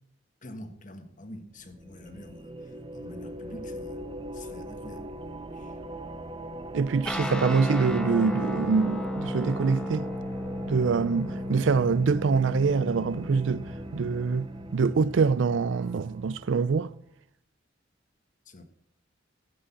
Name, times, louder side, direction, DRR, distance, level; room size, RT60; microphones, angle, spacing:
voice 1, 0.4-4.0 4.3-5.1 5.5-5.8 18.4-18.6, left 1 dB, 45° left, 1.5 m, -46 dB
sound 1, 1.6-17.0, right 1 dB, 30° right, 0.6 m, -41 dB
voice 2, 6.7-10.1 10.7-13.6 13.9-16.9, right 5 dB, 85° right, 0.4 m, -25 dB
sound 2, 7.1-15.9, left 1 dB, 5° left, 1.0 m, -35 dB
14.0 x 7.8 x 5.9 m
head